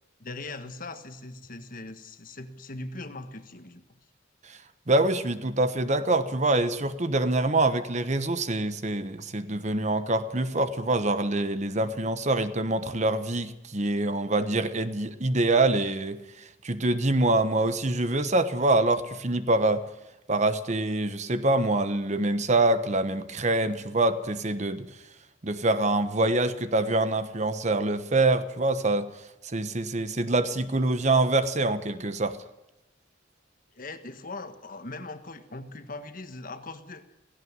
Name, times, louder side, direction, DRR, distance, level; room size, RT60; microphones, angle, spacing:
voice 1, 0.2-3.8 33.7-37.0, left 2 dB, 45° left, 1.6 m, -40 dB
voice 2, 4.9-19.8 20.3-24.8 25.4-29.1 29.4-32.4, right 2 dB, 40° right, 1.1 m, -25 dB
16.5 x 16.5 x 9.6 m
head